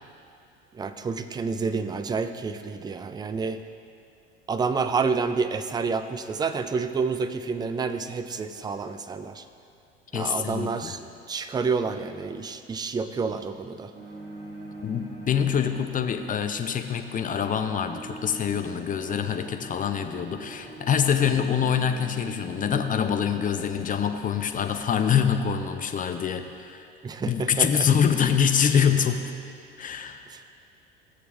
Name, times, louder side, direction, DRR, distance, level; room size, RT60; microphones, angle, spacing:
voice 1, 0.7-3.6 4.5-9.4 10.1-13.9 27.0-27.9 30.3-30.4, right 5 dB, 15° right, 10 dB, 0.4 m, -29 dB
voice 2, 10.1-10.9 14.8-26.9 27.3-29.3 29.8-30.2, left 7 dB, 25° left, 7 dB, 0.7 m, -25 dB
sound 1, 13.9-24.4, right 2 dB, 35° right, 1.7 m, -43 dB
16.5 x 6.8 x 2.5 m, 2.6 s
hypercardioid pair, 70°, 31 cm